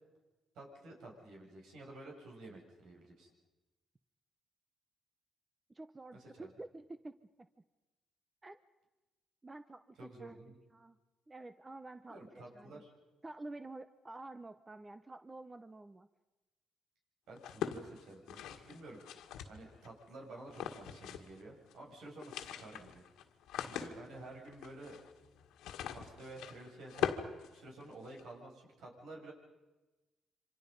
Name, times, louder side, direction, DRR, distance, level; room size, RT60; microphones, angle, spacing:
voice 1, 0.5-3.3 6.1-6.5 10.0-10.6 12.1-12.9 17.3-23.0 23.6-25.0 25.9-27.1 27.5-29.3, right 2 dB, 75° right, 0 dB, 7.3 m, -51 dB
voice 2, 5.7-7.5 8.4-8.6 9.4-10.4 10.7-11.0 11.3-12.8 13.2-16.1, right 2 dB, 20° right, 12 dB, 0.8 m, -49 dB
sound 1, 17.4-19.9 20.5-21.4 21.7-21.8 22.1-28.2, left 10 dB, 90° left, 1.8 m, -42 dB
27.5 x 25.5 x 5.4 m, 1.1 s
cardioid pair, 90°, 0 cm